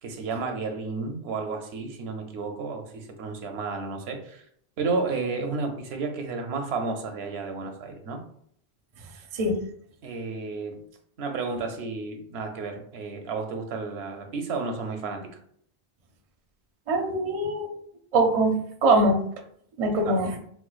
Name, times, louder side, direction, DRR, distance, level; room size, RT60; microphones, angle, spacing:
voice 1, 0.0-4.4 4.8-8.2 10.0-10.8 11.2-15.2 20.0-20.2, right 4 dB, 80° right, 4 dB, 0.8 m, -32 dB
voice 2, 16.9-17.7 18.1-18.6 18.8-19.2 19.8-20.4, right 2 dB, 45° right, 3 dB, 0.5 m, -22 dB
4.2 x 2.1 x 2.3 m, 0.65 s
omnidirectional pair, 1.1 m